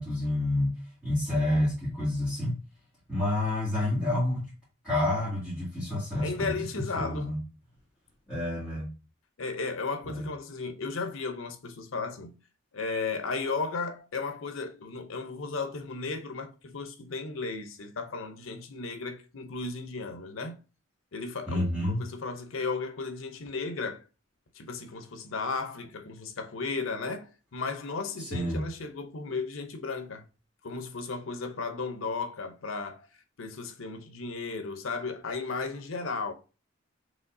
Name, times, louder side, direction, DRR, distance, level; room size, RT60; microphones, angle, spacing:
voice 1, 0.0-2.6 3.1-4.5 4.8-6.5 7.0-7.4 8.3-8.9 10.0-10.3 21.5-22.1 28.2-28.6, left 1 dB, 5° left, 2.2 m, -29 dB
voice 2, 6.2-7.3 9.4-12.3 12.7-20.6 21.1-24.0 24.5-30.2 30.6-33.1 33.4-36.3, left 4 dB, 85° left, 0.7 m, -35 dB
5.0 x 3.2 x 2.6 m
head